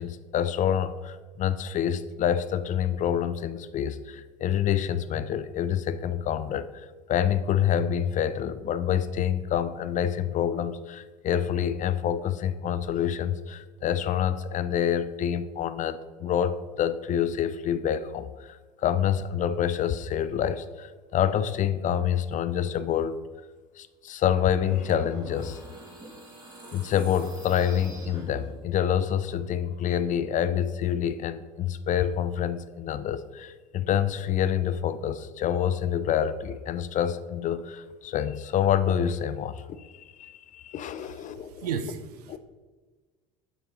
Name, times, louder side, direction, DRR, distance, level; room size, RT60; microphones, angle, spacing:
voice 1, 0.0-23.2 23.8-25.6 26.7-41.7 42.3-42.4, left 9 dB, 40° left, 14 dB, 0.5 m, -27 dB
sound 1, 24.5-28.8, right 1 dB, 25° right, 2.4 m, -44 dB
voice 2, 41.3-42.4, right 6 dB, 80° right, 9 dB, 0.6 m, -34 dB
7.3 x 6.0 x 3.9 m, 1.4 s
hypercardioid pair, 70°, 19 cm